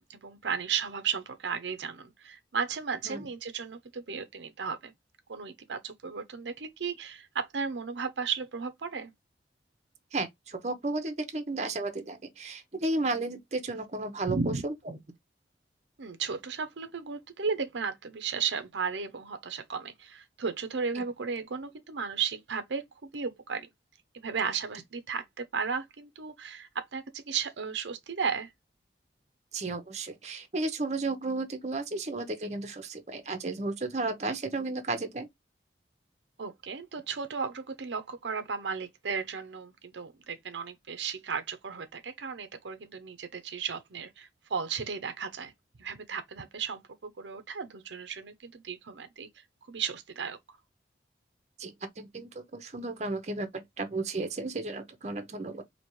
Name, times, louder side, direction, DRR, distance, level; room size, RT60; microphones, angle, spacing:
voice 1, 0.0-4.9 5.3-9.1 14.3-14.6 16.0-23.7 24.2-28.5 36.4-45.5 45.8-49.3 49.7-50.4, right 6 dB, 85° right, 0.7 m, -35 dB
voice 2, 10.1-14.7 20.9-21.0 29.5-35.3 51.6-55.6, right 2 dB, 40° right, 0.7 m, -33 dB
4.3 x 2.9 x 3.0 m
head